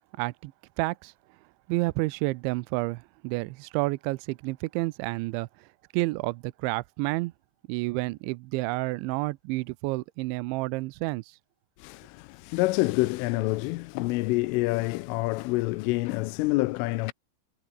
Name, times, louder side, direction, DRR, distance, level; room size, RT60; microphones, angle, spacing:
voice 1, 0.2-0.5 0.8-1.1 1.7-5.5 5.9-7.3 7.7-11.4, right 22 dB, 85° right, 2.7 m, -30 dB
voice 2, 11.8-17.1, left 21 dB, 90° left, 3.2 m, -27 dB
omnidirectional pair, 5.8 m